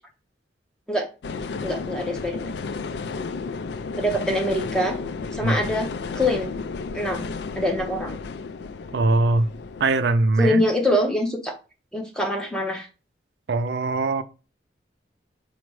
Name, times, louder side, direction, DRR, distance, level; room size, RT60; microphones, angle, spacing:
sound 1, 1.2-9.9, left 4 dB, 70° left, 0.3 m, -32 dB
voice 1, 1.6-2.5 4.0-5.0 5.3-5.9 6.1-6.5 6.9-7.2 7.5-8.2 10.4-11.5 11.9-12.9, left 1 dB, 5° left, 0.6 m, -24 dB
voice 2, 8.9-9.5 9.8-10.6 13.5-14.2, right 2 dB, 65° right, 0.4 m, -21 dB
4.9 x 2.1 x 4.6 m
head